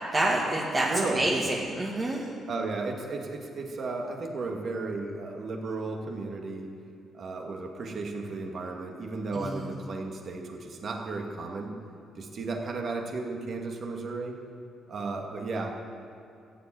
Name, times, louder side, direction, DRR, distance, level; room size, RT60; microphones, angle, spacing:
voice 1, 0.1-2.2 9.3-9.7, right 1 dB, 25° right, -3 dB, 1.9 m, -27 dB
voice 2, 0.9-1.3 2.5-6.7 7.1-11.7 12.2-14.4 14.9-15.7, right 3 dB, 55° right, 1 dB, 2.1 m, -34 dB
14.5 x 7.8 x 9.4 m, 2.5 s
cardioid pair, 90°, 0 cm